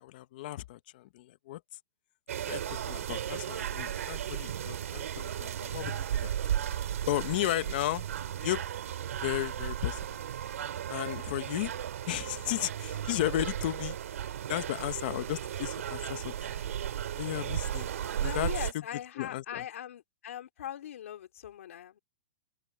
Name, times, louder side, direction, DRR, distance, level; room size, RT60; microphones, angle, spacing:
voice 1, 0.0-1.6 2.5-6.4 7.0-8.1 8.3-8.6 9.2-10.2 10.9-11.7 12.1-14.0 14.5-16.3 17.2-17.9 18.2-19.7, left 15 dB, 35° left, 1.0 m, -34 dB
sound 1, 2.3-18.7, right 10 dB, 75° right, 2.5 m, -35 dB
voice 2, 18.2-22.0, left 10 dB, 65° left, 3.1 m, -41 dB
hypercardioid pair, 175°, 8 cm